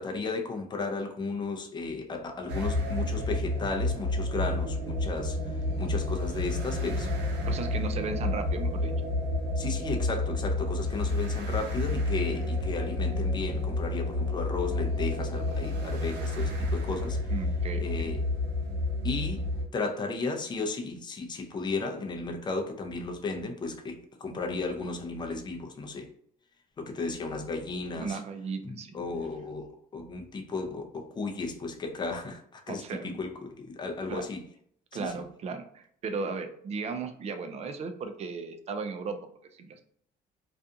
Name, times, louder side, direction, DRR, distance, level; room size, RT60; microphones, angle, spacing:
voice 1, 0.0-7.1 9.6-17.2 17.8-18.2 19.0-19.4 19.7-26.1 26.8-28.2 28.6-34.4 35.0-35.2, left 3 dB, 25° left, 3 dB, 0.5 m, -34 dB
sound 1, 2.5-19.6, left 2 dB, 90° right, 0.6 m, -30 dB
voice 2, 7.4-8.9 17.3-18.1 27.9-29.0 32.7-33.2 34.1-34.2 34.9-39.2 39.5-39.8, right 4 dB, 40° right, 7 dB, 0.4 m, -36 dB
2.5 x 2.3 x 2.6 m, 0.64 s
cardioid pair, 110°, 17 cm